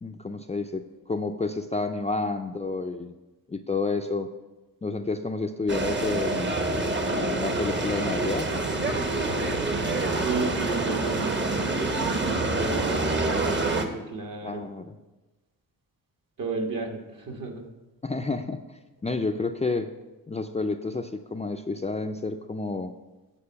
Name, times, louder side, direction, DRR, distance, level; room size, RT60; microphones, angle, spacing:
voice 1, 0.0-3.1 3.5-4.3 4.8-6.5 7.0-8.5 14.4-15.0 18.0-18.6 19.0-19.9 20.3-22.9, left 3 dB, 20° left, 5 dB, 0.4 m, -30 dB
sound 1, 5.7-13.9, right 2 dB, 30° right, 0.9 m, -26 dB
voice 2, 9.3-11.3 12.0-12.9 13.7-14.7 16.4-17.7, right 3 dB, 55° right, 2 dB, 1.5 m, -33 dB
8.9 x 4.6 x 5.8 m, 1.1 s
cardioid pair, 80°, 38 cm